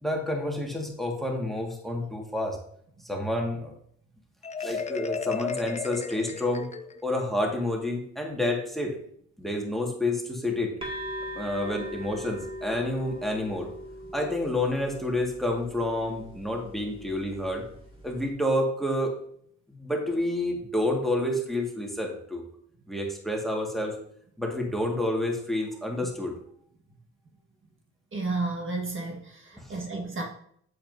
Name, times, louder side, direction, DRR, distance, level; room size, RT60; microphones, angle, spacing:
voice 1, 0.0-2.6 3.0-3.7 4.6-6.7 7.0-9.0 9.4-10.7 11.4-13.7 14.1-17.6 18.0-19.1 19.7-22.4 22.9-24.0 24.4-26.3 29.5-29.8, left 1 dB, ahead, 0 dB, 1.9 m, -29 dB
Marimba xylophone, 4.4-7.2, left 6 dB, 25° left, 0.5 m, -34 dB
sound 1, 10.8-18.3, equal, 20° right, 2.2 m, -40 dB
voice 2, 28.1-30.2, right 3 dB, 40° right, 1 dB, 1.7 m, -32 dB
8.4 x 7.9 x 2.7 m, 0.65 s
cardioid pair, 90°, 30 cm